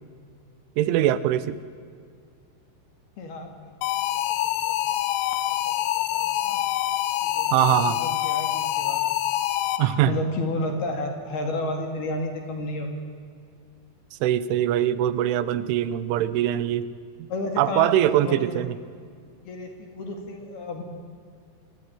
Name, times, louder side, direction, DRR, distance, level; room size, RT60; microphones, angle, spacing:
voice 1, 0.8-1.6 7.5-8.0 9.8-10.1 14.2-16.9 17.2-17.3 17.6-18.8, right 12 dB, 80° right, 15 dB, 3.3 m, -22 dB
voice 2, 3.2-5.0 5.5-6.6 7.2-9.0 10.1-12.9 17.3-18.7 19.4-20.8, left 1 dB, 55° left, 4 dB, 4.0 m, -32 dB
sound 1, 3.8-10.1, left 13 dB, 85° left, 3.6 m, -26 dB
28.0 x 21.5 x 9.4 m, 2.2 s
omnidirectional pair, 5.8 m